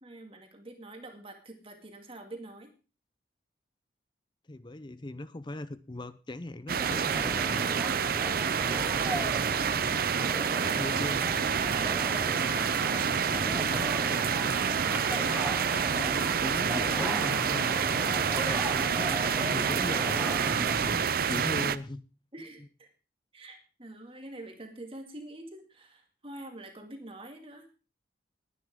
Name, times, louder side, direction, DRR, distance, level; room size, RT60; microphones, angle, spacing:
voice 1, 0.0-2.7 10.2-12.8 22.3-22.9 23.3-27.7, right 1 dB, 30° right, 4 dB, 2.2 m, -46 dB
voice 2, 4.5-7.8 8.7-9.5 10.6-11.3 13.5-14.0 15.9-17.8 19.0-22.0, left 1 dB, 25° left, 14 dB, 0.6 m, -40 dB
sound 1, 6.7-21.8, right 7 dB, 55° right, 0.6 m, -28 dB
sound 2, 6.8-20.9, right 1 dB, 10° right, 1.0 m, -36 dB
19.0 x 10.0 x 3.7 m, 0.34 s
head